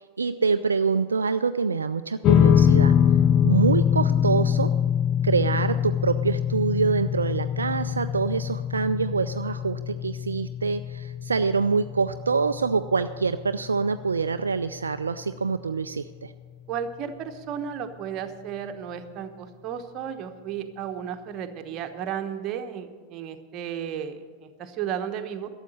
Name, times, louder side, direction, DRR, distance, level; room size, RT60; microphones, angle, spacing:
voice 1, 0.0-2.9 3.4-4.7 5.2-16.3, right 5 dB, 75° right, 10 dB, 0.4 m, -25 dB
sound 1, 2.2-14.8, left 8 dB, 35° left, 0.4 m, -24 dB
voice 2, 16.7-25.5, right 8 dB, 35° right, 6 dB, 1.1 m, -34 dB
12.5 x 7.3 x 9.2 m, 1.5 s
figure-of-eight pair, 90°, 0 cm